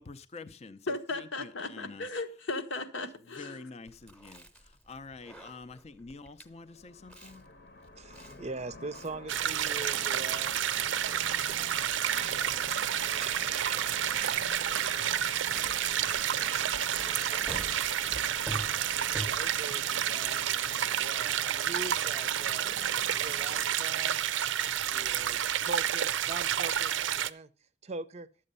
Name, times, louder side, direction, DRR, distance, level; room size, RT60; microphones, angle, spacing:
voice 1, 0.0-2.1 3.4-7.4, left 3 dB, 35° left, 0.5 m, -47 dB
voice 2, 0.9-3.6, left 2 dB, 85° left, 1.2 m, -36 dB
Chewing mastication, 3.9-19.8, right 1 dB, 5° left, 0.9 m, -47 dB
sound 1, 6.5-23.7, left 2 dB, 60° left, 1.1 m, -47 dB
voice 3, 8.0-17.5 17.8-18.2 19.0-20.5 21.0-22.8 23.1-24.2 24.9-27.5 27.8-28.3, right 3 dB, 35° right, 0.5 m, -44 dB
sound 2, 9.3-27.3, right 10 dB, 80° right, 0.5 m, -30 dB
11.0 x 7.6 x 5.4 m
head